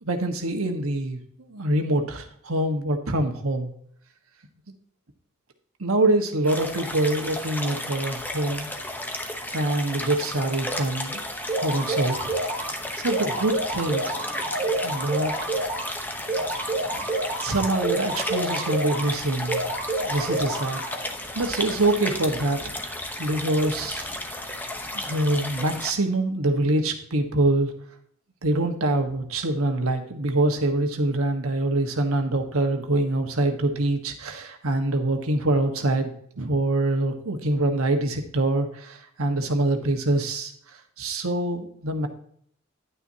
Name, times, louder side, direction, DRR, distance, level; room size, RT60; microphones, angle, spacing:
voice 1, 0.0-1.2 1.5-3.7 5.8-8.7 9.5-11.2 11.5-12.7 13.0-14.0 14.8-15.3 17.4-19.6 20.0-20.8 21.3-22.6 23.2-24.1 24.9-27.7 28.4-36.1 36.4-40.5 41.0-42.1, right 2 dB, 80° right, 4 dB, 1.4 m, -25 dB
sound 1, 6.4-25.9, left 1 dB, 10° left, 0.9 m, -33 dB
sound 2, 11.5-12.7 13.1-15.9 16.3-19.1 19.5-21.1, right 2 dB, 20° right, 3.2 m, -28 dB
11.0 x 9.2 x 2.8 m, 0.63 s
head